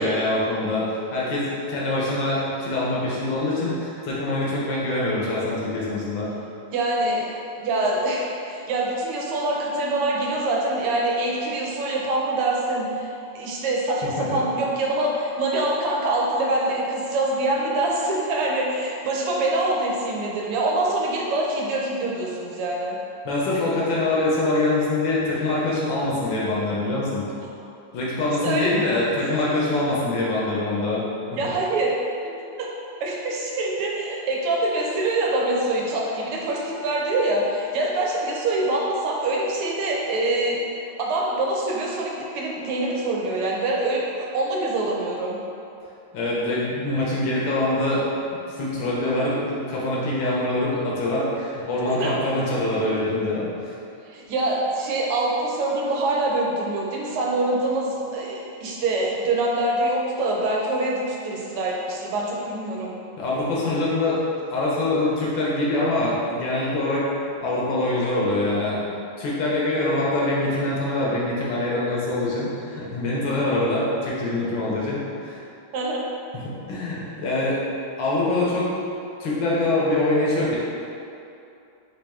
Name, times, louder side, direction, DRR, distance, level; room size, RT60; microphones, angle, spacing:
voice 1, 0.0-6.3 14.0-14.4 23.2-27.2 27.9-31.0 46.1-48.0 48.6-53.7 63.2-64.2 64.5-67.1 67.4-68.8 69.2-75.4 76.3-77.6 78.0-78.7 79.2-80.6, left 2 dB, 65° left, -6 dB, 1.4 m, -24 dB
voice 2, 6.7-7.3 7.6-13.1 13.4-23.0 28.4-28.7 31.4-31.9 32.6-32.7 33.0-40.6 41.0-45.4 51.9-52.1 54.1-63.0 75.7-76.0, right 2 dB, 90° right, -2 dB, 1.6 m, -25 dB
4.1 x 3.5 x 3.5 m, 2.6 s
omnidirectional pair, 2.4 m